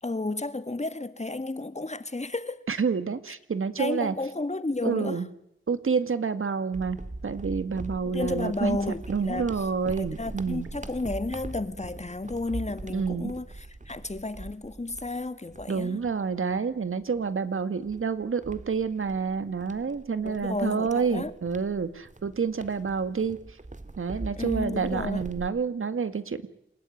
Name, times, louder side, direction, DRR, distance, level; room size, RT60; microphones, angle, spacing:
voice 1, 0.0-2.6 3.8-5.2 8.0-9.5 9.9-16.0 20.2-21.3 24.4-25.2, left 2 dB, 35° left, 1.9 m, -32 dB
voice 2, 2.7-4.1 4.8-5.3 5.7-7.0 7.2-8.8 9.1-10.7 12.9-13.3 15.7-23.4 24.0-26.5, right 5 dB, 85° right, 1.9 m, -28 dB
sound 1, 6.7-16.6 17.1-17.2 17.8-25.5, right 2 dB, 35° right, 2.1 m, -41 dB
28.0 x 16.0 x 9.9 m
cardioid pair, 50°, 21 cm